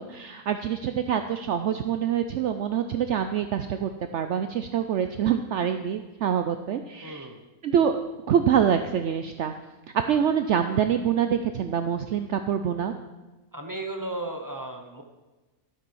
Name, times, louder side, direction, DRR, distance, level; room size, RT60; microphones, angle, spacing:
voice 1, 0.0-7.3 7.6-8.0 8.3-9.5 9.9-12.9, right 8 dB, 65° right, 8 dB, 0.8 m, -25 dB
voice 2, 7.0-7.4 13.5-15.0, right 2 dB, 15° right, 3 dB, 0.8 m, -35 dB
12.5 x 7.5 x 5.4 m, 1.1 s
omnidirectional pair, 1.5 m